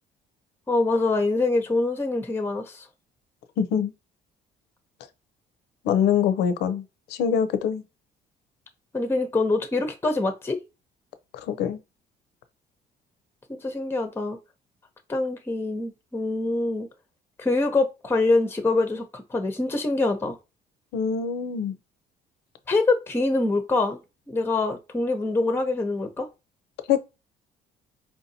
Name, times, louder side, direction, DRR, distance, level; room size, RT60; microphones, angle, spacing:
voice 1, 0.7-2.9 8.9-10.6 13.6-14.4 15.1-16.9 17.4-20.4 22.7-24.0 24.3-26.3, left 2 dB, 15° left, 0.7 m, -24 dB
voice 2, 3.6-3.9 5.8-6.8 7.1-7.8 11.5-11.8 20.9-21.7 26.9-27.0, left 8 dB, 75° left, 0.6 m, -24 dB
4.6 x 2.7 x 2.7 m
cardioid pair, 110°, 17 cm